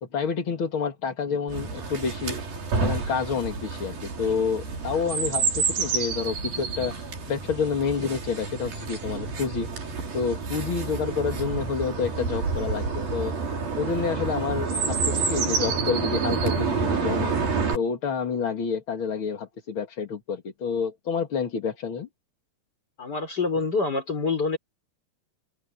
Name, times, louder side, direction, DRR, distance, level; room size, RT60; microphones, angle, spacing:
voice 1, 0.0-2.4 2.8-6.9 7.3-9.7 10.1-13.3 13.8-17.3 17.7-22.1, left 5 dB, 40° left, 2.0 m, -28 dB
Chirp tweet, 1.5-17.8, right 4 dB, 60° right, 6.5 m, -29 dB
voice 2, 23.0-24.6, left 4 dB, 25° left, 5.4 m, -26 dB
open air
omnidirectional pair, 4.8 m